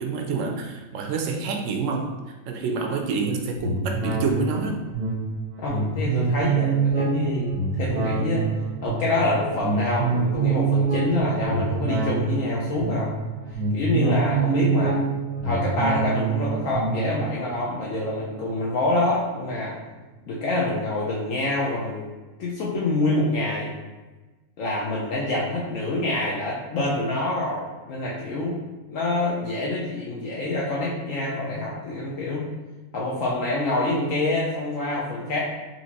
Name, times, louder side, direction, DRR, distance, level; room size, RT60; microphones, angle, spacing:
voice 1, 0.0-2.1 2.5-4.8, right 4 dB, 70° right, 3 dB, 0.9 m, -27 dB
sound 1, 3.6-19.3 19.7-19.8, right 4 dB, 85° right, 1.3 m, -26 dB
voice 2, 5.6-8.5 8.8-13.1 13.7-15.0 15.4-19.8 20.3-22.1 22.4-23.7 24.6-28.6 28.9-32.4 32.9-35.4, left 2 dB, 70° left, -5 dB, 1.0 m, -26 dB
4.3 x 2.8 x 2.8 m, 1.2 s
omnidirectional pair, 1.5 m